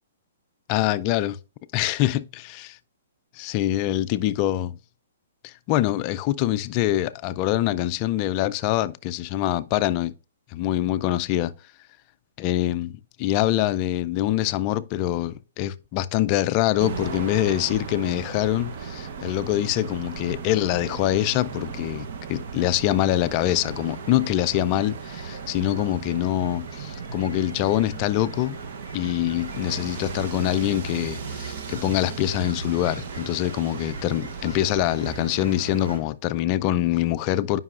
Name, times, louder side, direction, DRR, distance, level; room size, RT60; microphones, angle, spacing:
voice 1, 0.7-1.4 1.7-2.8 3.4-4.8 5.4-10.1 10.5-11.5 12.4-28.6 28.9-37.6, left 14 dB, 30° left, 0.3 m, -24 dB
sound 1, 16.8-36.0, right 5 dB, 55° right, 0.7 m, -36 dB
Fowl / Chirp tweet, 21.5-36.0, right 1 dB, 70° right, 3.4 m, -48 dB
9.5 x 5.4 x 2.4 m
hypercardioid pair, 150°, 0 cm